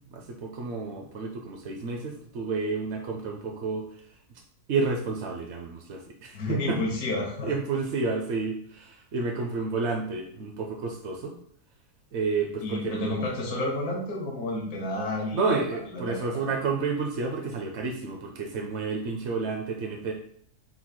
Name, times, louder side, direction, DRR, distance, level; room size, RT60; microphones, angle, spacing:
voice 1, 0.1-3.9 4.7-6.8 7.4-11.3 12.1-13.2 15.3-20.1, right 4 dB, 70° right, 2 dB, 0.6 m, -30 dB
voice 2, 6.3-7.5 12.6-15.4 15.9-16.5, left 1 dB, 65° left, -1 dB, 1.4 m, -30 dB
7.8 x 3.0 x 2.2 m, 0.64 s
omnidirectional pair, 1.7 m